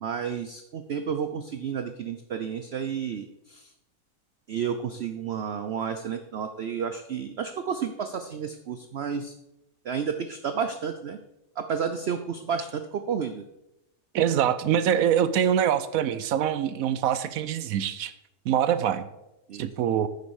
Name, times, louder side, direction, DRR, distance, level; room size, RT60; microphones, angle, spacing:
voice 1, 0.0-3.7 4.5-9.3 9.8-11.2 11.6-13.4 19.5-19.7, right 7 dB, 85° right, 8 dB, 0.5 m, -31 dB
voice 2, 14.1-18.1 18.5-19.1 19.6-20.1, right 9 dB, 70° right, 14 dB, 0.9 m, -24 dB
9.5 x 6.9 x 4.7 m, 0.88 s
omnidirectional pair, 1.8 m